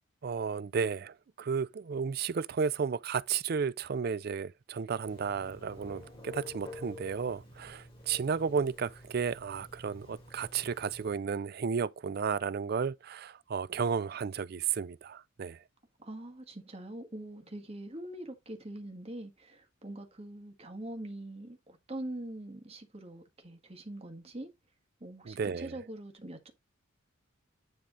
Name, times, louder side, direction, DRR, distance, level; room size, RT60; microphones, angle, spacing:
voice 1, 0.2-15.6 25.2-25.8, right 6 dB, 50° right, 0.4 m, -33 dB
Telephone, 5.1-11.2, left 2 dB, 25° left, 2.9 m, -49 dB
voice 2, 16.0-24.5 25.0-26.5, right 1 dB, 30° right, 1.6 m, -43 dB
10.0 x 3.5 x 3.8 m
head